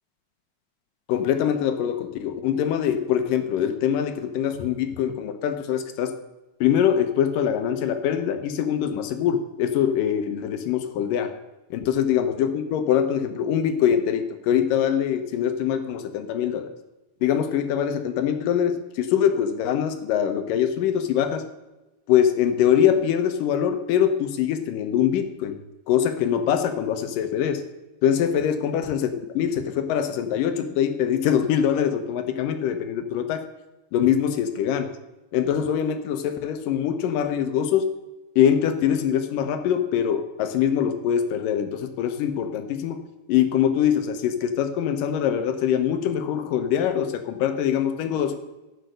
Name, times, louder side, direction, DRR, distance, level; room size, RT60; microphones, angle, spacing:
voice 1, 1.1-6.1 6.6-11.3 11.7-16.7 17.2-21.5 22.1-25.6 25.9-27.6 28.0-33.4 33.9-34.9 35.3-37.9 38.4-43.0 43.3-48.4, left 9 dB, 80° left, 8 dB, 2.7 m, -23 dB
11.0 x 9.3 x 6.5 m, 1.0 s
omnidirectional pair, 3.8 m